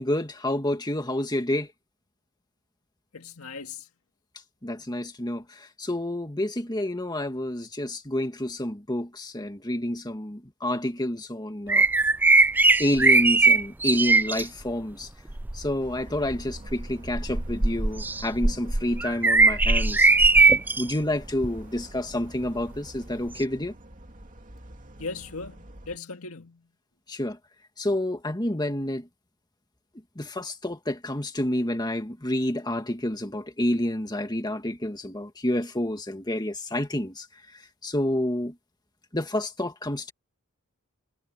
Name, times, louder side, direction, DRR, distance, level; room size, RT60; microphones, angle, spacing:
voice 1, 0.0-1.7 4.6-11.8 12.8-15.1 15.5-20.1 20.8-23.7 27.1-27.4 27.8-29.1 30.2-37.3 37.8-38.5 39.1-40.1, left 1 dB, 20° left, 2.0 m, -29 dB
voice 2, 3.1-3.9 25.0-26.6, left 4 dB, 85° left, 2.0 m, -38 dB
sound 1, 11.7-14.4 15.3-15.6 16.3-20.9 21.4-21.6 23.4-23.5, right 3 dB, 10° right, 0.3 m, -20 dB
sound 2, 15.8-26.0, right 1 dB, 35° right, 2.6 m, -47 dB
head